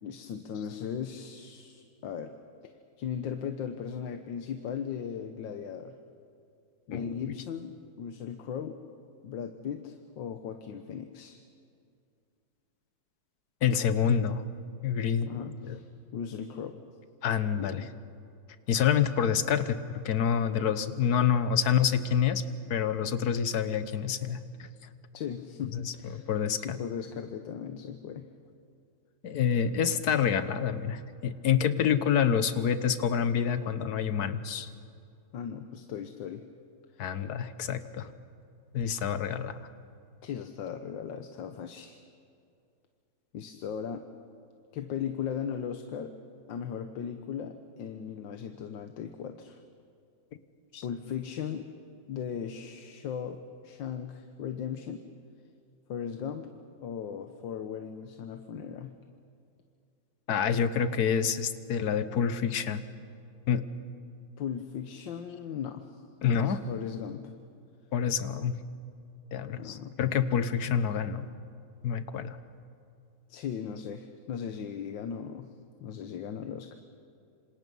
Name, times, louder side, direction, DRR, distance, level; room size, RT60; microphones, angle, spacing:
voice 1, 0.0-2.3 2.6-2.7 3.0-5.9 6.9-8.8 9.2-11.4 15.3-15.9 16.1-16.8 17.5-17.9 25.1-26.3 26.6-28.3 35.3-36.4 36.9-37.1 40.2-42.0 43.3-44.1 44.7-46.2 46.5-49.6 50.8-51.7 52.1-55.0 55.9-56.5 56.8-58.9 64.4-65.9 66.4-67.3 69.4-69.9 73.3-75.5 75.8-76.8, left 8 dB, 90° left, 7 dB, 1.7 m, -37 dB
voice 2, 6.9-7.2 13.6-14.4 14.8-15.8 17.2-17.9 18.7-22.4 22.7-24.4 25.8-26.8 29.2-34.7 37.0-38.1 38.7-39.5 50.7-50.8 60.3-62.8 63.5-63.6 66.2-66.6 67.9-68.6 69.3-71.3 71.8-72.4, left 8 dB, 60° left, 12 dB, 1.4 m, -27 dB
27.0 x 26.5 x 5.4 m, 2.5 s
omnidirectional pair, 2.0 m